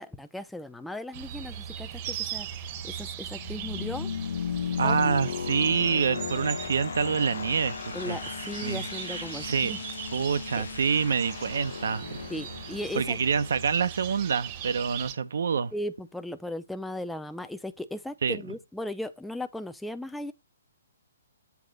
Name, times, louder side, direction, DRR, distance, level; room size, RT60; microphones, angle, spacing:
voice 1, 0.0-2.5 2.8-4.1 4.8-5.2 7.9-9.8 10.6-10.7 12.3-13.2 15.7-20.3, left 1 dB, ahead, 0.5 m, -37 dB
sound 1, 1.1-15.1, right 10 dB, 30° right, 1.0 m, -40 dB
sound 2, 2.3-14.9, left 7 dB, 75° left, 0.7 m, -37 dB
voice 2, 4.8-8.2 8.6-9.7 10.1-12.1 12.9-15.7 18.2-18.4, right 6 dB, 70° right, 0.7 m, -27 dB
8.3 x 3.9 x 5.1 m
hypercardioid pair, 155°, 0 cm